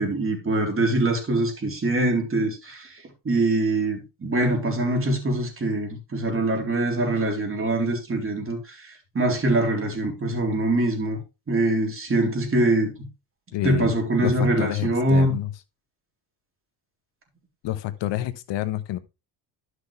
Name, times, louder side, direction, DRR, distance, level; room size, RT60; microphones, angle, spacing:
voice 1, 0.0-11.2 11.5-13.1 13.6-15.4, right 2 dB, 30° right, 3.8 m, -24 dB
voice 2, 13.5-13.9 14.2-15.5 17.6-19.0, left 14 dB, 70° left, 1.2 m, -28 dB
11.5 x 6.5 x 3.3 m
cardioid pair, 95°, 45 cm